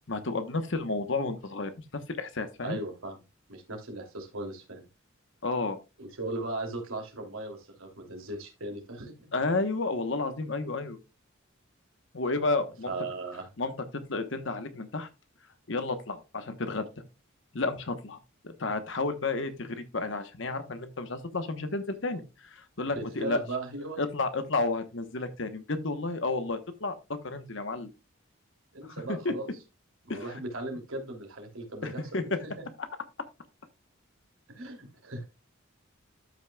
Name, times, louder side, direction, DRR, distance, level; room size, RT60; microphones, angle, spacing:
voice 1, 0.1-2.8 5.4-5.8 9.3-11.0 12.1-12.9 13.6-15.1 15.7-16.9 17.5-18.2 18.4-23.4 24.0-27.9 28.8-29.3 30.1-30.2 31.8-32.4, left 3 dB, 60° left, 9 dB, 1.1 m, -31 dB
voice 2, 2.6-3.2 3.5-4.8 6.0-9.3 12.9-13.5 22.9-24.0 28.7-29.5 30.0-32.2 32.6-32.7 34.5-35.2, right 2 dB, 85° right, 2 dB, 2.9 m, -37 dB
13.0 x 5.9 x 2.3 m, 0.27 s
head